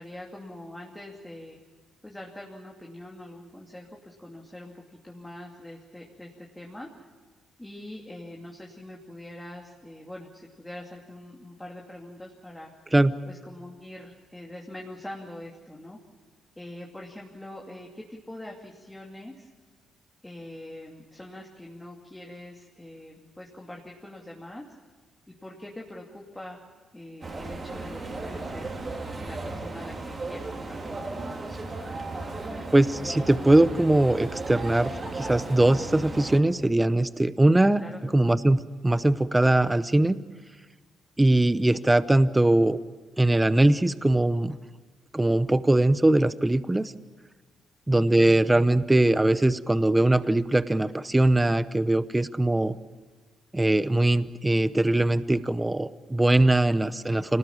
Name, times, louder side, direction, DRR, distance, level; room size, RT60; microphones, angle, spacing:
voice 1, 0.0-1.6 2.0-7.1 7.6-12.7 13.3-16.0 16.6-19.5 20.2-24.6 25.3-26.6 26.9-28.8 29.2-31.7 37.8-38.0 48.0-48.4, left 1 dB, 10° left, -1 dB, 2.7 m, -43 dB
sound 1, 27.2-36.4, right 2 dB, 35° right, 3.6 m, -35 dB
voice 2, 32.7-37.8 38.1-40.2 41.2-42.8 43.2-44.5 45.1-46.9 47.9-52.8 53.5-57.4, right 1 dB, 10° right, 14 dB, 0.8 m, -21 dB
25.0 x 19.0 x 7.3 m, 1.4 s
cardioid pair, 90°, 0 cm